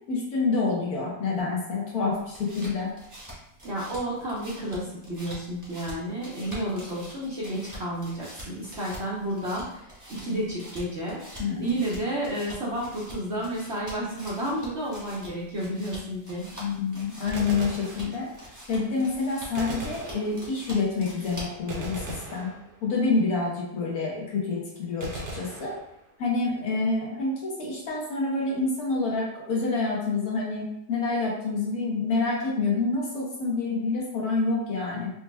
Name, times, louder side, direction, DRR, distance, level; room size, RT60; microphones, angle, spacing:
voice 1, 0.1-2.9 11.4-11.7 16.6-18.3 18.7-22.0 22.3-22.5 22.8-25.7 26.2-35.1, left 3 dB, 60° left, -4 dB, 1.4 m, -27 dB
sound 1, 2.1-21.7, equal, 15° right, 0.9 m, -45 dB
voice 2, 3.6-11.2 11.6-16.4, right 1 dB, 50° right, -6 dB, 0.9 m, -31 dB
Gunshot gunfire, 17.3-18.6 19.5-20.8 21.7-23.1 25.0-26.3, right 1 dB, 80° right, 0.4 m, -39 dB
4.4 x 2.9 x 2.2 m, 0.79 s
omnidirectional pair, 1.9 m